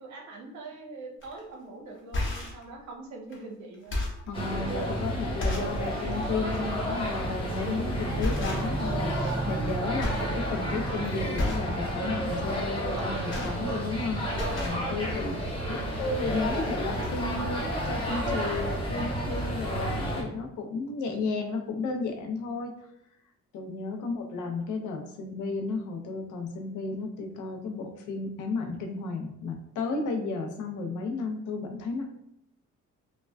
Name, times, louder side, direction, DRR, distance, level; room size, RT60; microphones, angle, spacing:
voice 1, 0.0-4.0 15.6-16.0 23.9-24.2, right 3 dB, 70° right, 1 dB, 0.7 m, -43 dB
sound 1, 1.2-1.4 1.9-2.6 3.3-3.4 3.7-4.3 4.9-5.0 5.4-5.8 6.2-6.4 7.5-7.8 8.2-8.9 9.2-9.7 10.0-10.3 10.6-10.9 11.3-11.7 12.9-14.0 14.3-14.8 15.6-15.7 15.9-16.1, left 2 dB, 40° left, 0.8 m, -32 dB
voice 2, 4.3-14.2 14.5-22.7 23.5-32.0, left 3 dB, 80° left, 3 dB, 0.6 m, -33 dB
sound 2, 4.3-20.2, right 1 dB, 15° left, 1.0 m, -31 dB
3.3 x 2.1 x 2.2 m, 0.75 s
cardioid pair, 90°, 30 cm